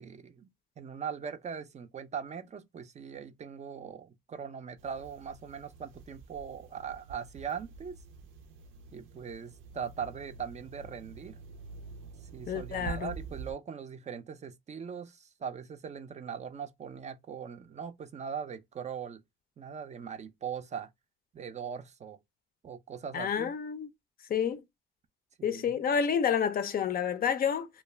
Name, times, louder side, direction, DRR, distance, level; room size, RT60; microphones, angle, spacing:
voice 1, 0.0-8.0 8.9-11.4 12.3-19.2 19.6-20.9 21.3-22.2 22.6-23.5 25.4-25.8, right 7 dB, 35° right, 0.4 m, -40 dB
sound 1, 4.8-13.5, right 5 dB, 90° right, 0.5 m, -47 dB
voice 2, 12.5-13.1 23.1-23.9 24.3-24.6 25.4-27.7, left 7 dB, 50° left, 0.4 m, -29 dB
2.4 x 2.2 x 3.1 m
cardioid pair, 90°, 20 cm